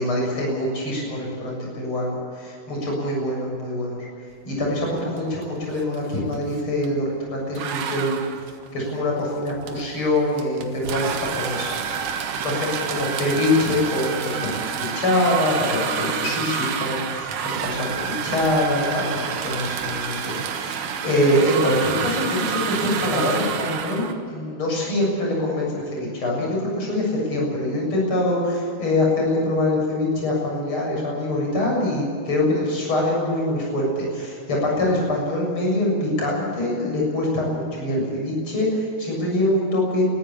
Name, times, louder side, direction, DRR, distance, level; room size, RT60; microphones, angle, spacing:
voice 1, 0.0-4.0 4.4-8.2 8.7-11.7 12.2-40.1, left 1 dB, 40° left, -2 dB, 8.1 m, -24 dB
sound 1, 5.2-5.4 5.7-7.0 7.5-24.1, right 7 dB, 80° right, 3.0 m, -28 dB
23.0 x 14.5 x 8.8 m, 2.3 s
omnidirectional pair, 3.7 m